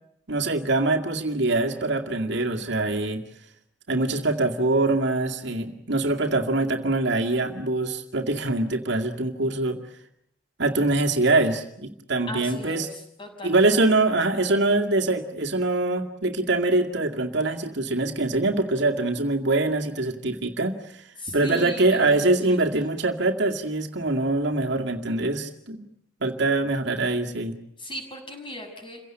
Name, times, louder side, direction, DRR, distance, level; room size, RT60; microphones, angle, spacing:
voice 1, 0.3-3.2 3.9-9.8 10.6-12.9 13.4-20.8 21.3-25.9 26.2-27.6, right 2 dB, 65° right, 3 dB, 2.3 m, -24 dB
voice 2, 12.3-14.0 21.2-22.9 27.8-29.0, equal, 25° left, 3 dB, 6.5 m, -38 dB
28.5 x 17.0 x 9.0 m, 0.75 s
head